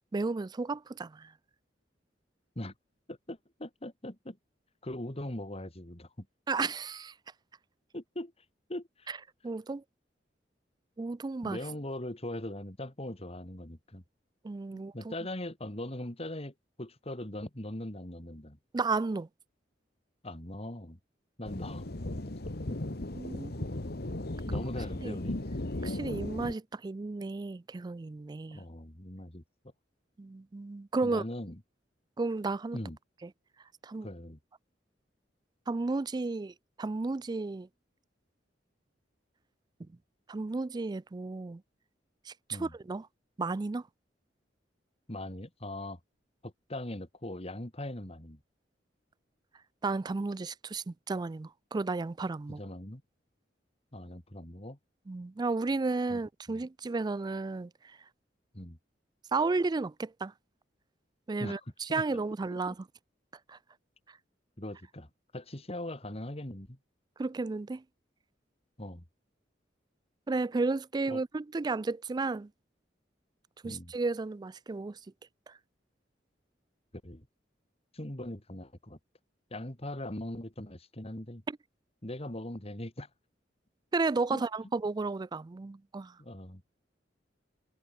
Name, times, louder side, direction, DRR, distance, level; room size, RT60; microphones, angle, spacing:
voice 1, 0.1-1.3 6.5-7.1 9.1-9.2 9.4-9.8 11.0-11.6 14.4-15.1 18.7-19.3 23.1-23.5 25.0-25.2 25.8-28.6 30.2-31.2 32.2-32.8 33.2-33.3 33.8-34.1 35.7-37.7 40.3-41.6 42.3-43.1 43.4-43.8 49.8-52.6 55.1-57.7 59.3-60.3 61.3-62.8 63.5-63.6 67.2-67.8 70.3-72.5 73.6-75.0 75.5-75.6 81.5-81.6 83.9-86.2, right 3 dB, 25° right, 0.3 m, -33 dB
voice 2, 3.1-4.4 4.8-6.3 7.9-8.3 8.7-9.1 11.4-14.0 14.7-18.6 20.2-21.0 21.4-21.9 24.4-25.4 28.5-29.4 31.0-31.6 32.7-33.0 34.0-34.4 42.5-42.7 45.1-46.0 46.4-48.4 52.6-53.0 53.9-54.8 56.1-56.2 56.5-56.6 58.5-58.8 61.4-61.6 61.9-62.2 64.6-66.8 68.8-69.0 71.1-71.2 73.6-73.9 77.0-77.2 77.9-79.0 79.5-81.4 82.0-83.1 84.3-84.4 86.2-86.6, left 1 dB, 35° left, 3.1 m, -40 dB
sound 1, 21.4-26.5, left 1 dB, 60° left, 1.6 m, -36 dB
head